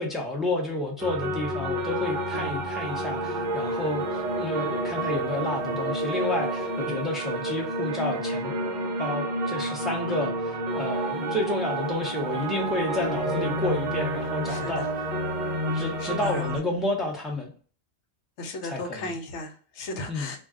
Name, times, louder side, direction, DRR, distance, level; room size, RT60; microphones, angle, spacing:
voice 1, 0.0-8.5 9.0-10.3 10.7-14.9 15.7-17.5 18.6-19.1 20.1-20.3, left 1 dB, ahead, -1 dB, 0.5 m, -30 dB
sound 1, 1.0-16.6, right 1 dB, 50° right, 0.6 m, -29 dB
voice 2, 10.1-10.4 14.5-14.9 15.7-16.5 18.4-20.4, left 2 dB, 70° left, 4 dB, 0.9 m, -36 dB
2.3 x 2.3 x 3.5 m, 0.42 s
omnidirectional pair, 1.3 m